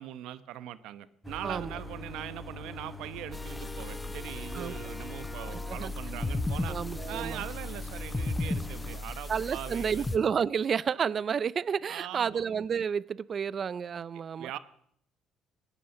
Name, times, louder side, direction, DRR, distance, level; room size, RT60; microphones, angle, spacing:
voice 1, 0.0-6.8 7.1-10.1 11.9-12.4 14.4-14.6, right 13 dB, 80° right, 14 dB, 1.0 m, -41 dB
sound 1, 1.2-9.0, left 2 dB, ahead, 1.5 m, -43 dB
sound 2, 3.3-10.2, left 2 dB, 15° left, 1.0 m, -35 dB
voice 2, 5.7-6.2 6.7-7.4 9.3-14.5, right 7 dB, 45° right, 21 dB, 0.5 m, -31 dB
18.0 x 10.0 x 7.8 m, 0.70 s
cardioid pair, 90°, 0 cm